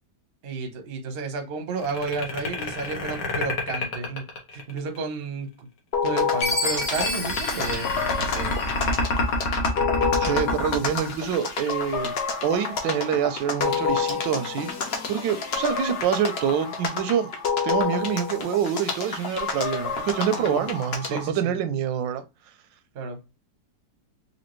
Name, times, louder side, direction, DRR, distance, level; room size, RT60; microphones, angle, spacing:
voice 1, 0.4-4.2 4.5-5.7 6.0-8.5 20.3-20.6 21.0-21.6 22.9-23.2, right 4 dB, 50° right, 0.7 m, -32 dB
sound 1, 1.8-5.0 6.4-11.9, left 3 dB, 90° left, 1.7 m, -28 dB
sound 2, 5.9-21.3, left 5 dB, 55° left, 0.7 m, -29 dB
Chime, 6.4-9.0, left 1 dB, 40° left, 1.1 m, -30 dB
voice 2, 10.2-12.1 12.4-17.3 17.6-22.2, right 8 dB, 85° right, 1.3 m, -26 dB
4.2 x 2.6 x 3.0 m
omnidirectional pair, 1.9 m